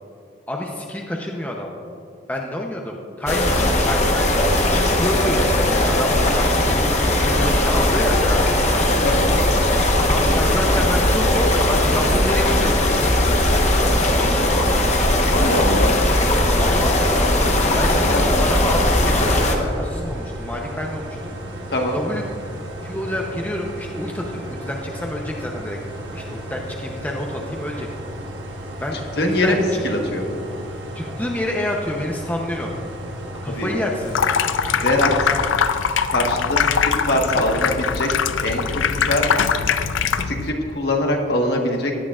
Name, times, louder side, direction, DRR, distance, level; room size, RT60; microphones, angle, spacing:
voice 1, 0.5-1.7 2.3-4.3 4.9-8.4 10.1-13.2 13.9-14.6 16.5-17.0 17.7-21.3 21.9-22.5 22.8-25.8 26.1-27.9 28.8-29.8 30.9-32.7 33.4-34.2 37.1-37.2, left 1 dB, 10° left, -1 dB, 0.7 m, -28 dB
sound 1, 3.3-19.6, left 1 dB, 35° left, 1.1 m, -18 dB
voice 2, 15.3-16.0 17.6-17.8 18.0-18.2 21.7-22.0 29.2-30.2 33.5-33.7 34.8-35.3 36.1-38.1 38.4-39.3 40.2-42.0, left 1 dB, 60° left, 1 dB, 1.4 m, -22 dB
sound 2, 18.6-35.5, right 1 dB, 75° right, 1.4 m, -34 dB
Water tap faucet / Sink (filling or washing), 34.0-40.5, left 7 dB, 90° left, 0.5 m, -22 dB
17.0 x 11.0 x 2.5 m, 2.6 s
head